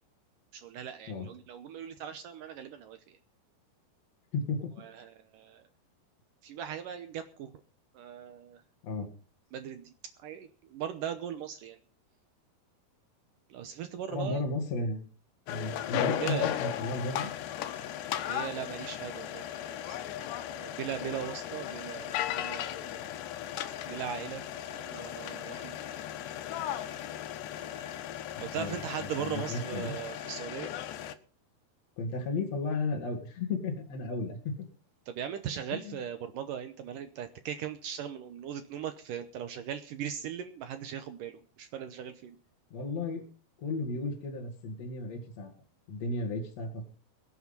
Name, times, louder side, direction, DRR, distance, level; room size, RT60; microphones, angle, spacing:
voice 1, 0.5-3.2 4.8-5.6 6.4-7.5 7.9-8.6 9.5-9.9 10.2-11.8 13.5-14.4 16.2-16.6 18.3-19.5 19.7-20.0 20.5-23.2 23.9-24.5 24.7-25.8 28.4-30.8 35.1-42.4, right 9 dB, 70° right, 9 dB, 2.1 m, -39 dB
voice 2, 4.3-4.7 5.0-5.1 8.8-9.1 14.1-15.1 15.5-17.3 28.3-30.0 32.0-34.5 35.7-36.0 42.7-43.3 43.6-45.5 45.9-46.9, left 3 dB, 45° left, 2 dB, 3.0 m, -34 dB
sound 1, 15.5-31.1, left 11 dB, 90° left, 3.2 m, -36 dB
22.0 x 8.5 x 5.6 m, 0.38 s
omnidirectional pair, 4.8 m